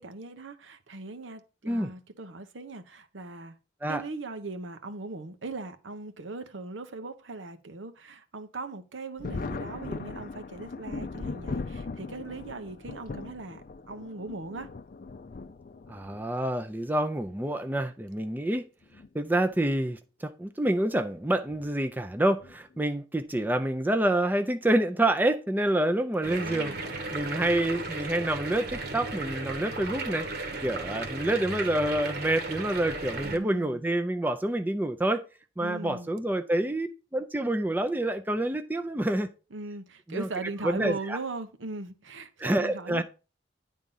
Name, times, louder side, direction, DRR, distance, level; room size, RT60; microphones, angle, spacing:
voice 1, 0.0-3.6 3.9-14.7 26.2-26.8 33.2-33.8 35.6-36.1 39.5-43.0, right 3 dB, 85° right, 1.0 m, -39 dB
Thunder, 9.2-16.2 17.3-17.4 18.8-19.1 19.4-19.5 21.5-21.7 22.4-22.8, left 3 dB, 45° left, 0.4 m, -39 dB
voice 2, 15.9-18.6 19.1-35.2 35.6-39.3 40.1-40.3 40.6-41.2 42.4-43.0, right 1 dB, 10° right, 0.5 m, -28 dB
sound 1, 26.2-33.4, right 3 dB, 55° right, 1.4 m, -35 dB
10.5 x 3.7 x 5.5 m
head